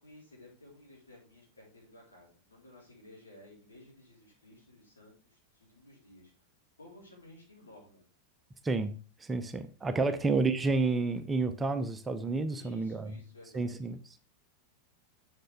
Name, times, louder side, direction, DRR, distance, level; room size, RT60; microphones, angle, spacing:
voice 1, 0.0-6.3 6.8-8.0 10.1-10.2 12.5-13.8, left 1 dB, 75° left, 3.8 m, -55 dB
voice 2, 8.6-8.9 9.2-13.2 13.5-14.2, right 3 dB, 15° right, 0.6 m, -30 dB
7.6 x 6.6 x 3.5 m
figure-of-eight pair, 90°, 0 cm